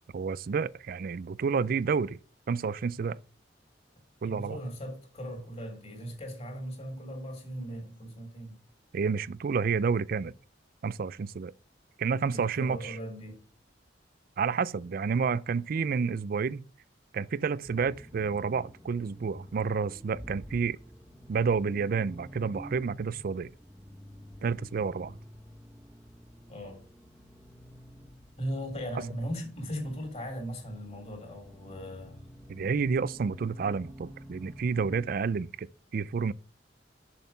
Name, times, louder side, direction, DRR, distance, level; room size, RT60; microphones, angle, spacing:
voice 1, 0.1-2.2 2.5-3.2 4.2-4.6 8.9-10.3 10.8-11.5 12.0-13.0 14.4-16.6 17.1-20.8 21.3-23.5 24.4-25.2 32.5-36.3, right 5 dB, 50° right, 0.4 m, -30 dB
voice 2, 4.2-8.6 12.3-13.4 26.5-26.8 28.4-32.3, equal, 35° left, 3.4 m, -38 dB
Accelerating revving vroom, 17.6-35.1, equal, ahead, 1.5 m, -50 dB
6.9 x 6.5 x 5.6 m
head